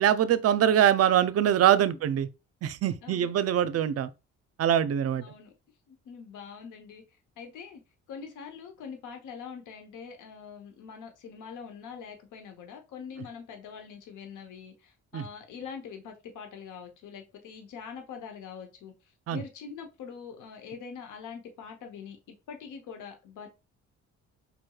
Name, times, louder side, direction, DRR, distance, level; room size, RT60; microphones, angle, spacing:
voice 1, 0.0-2.3 2.6-4.1 4.6-5.2 15.1-15.2 19.3-19.4, right 10 dB, 55° right, 0.5 m, -23 dB
voice 2, 3.0-3.3 5.2-5.5 5.9-7.0 7.4-7.8 8.1-18.9 19.3-22.2 22.5-23.5, left 6 dB, 80° left, 1.0 m, -43 dB
5.1 x 3.1 x 2.3 m
cardioid pair, 90°, 30 cm